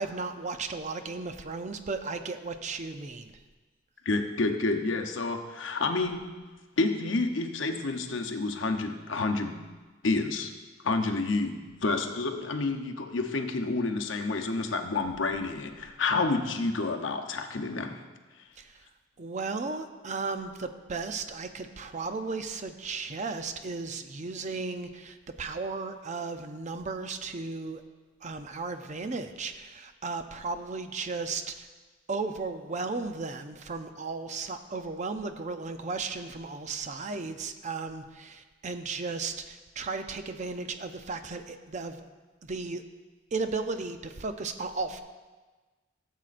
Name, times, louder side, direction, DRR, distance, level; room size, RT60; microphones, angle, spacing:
voice 1, 0.0-3.3 18.6-18.8 19.2-27.8 28.2-31.7 32.1-42.0 42.4-42.8 43.3-45.0, right 4 dB, 40° right, 8 dB, 0.5 m, -35 dB
voice 2, 4.1-6.3 6.8-9.5 10.0-10.5 10.8-18.0, left 3 dB, 75° left, 4 dB, 0.8 m, -29 dB
16.0 x 7.4 x 2.5 m, 1.3 s
head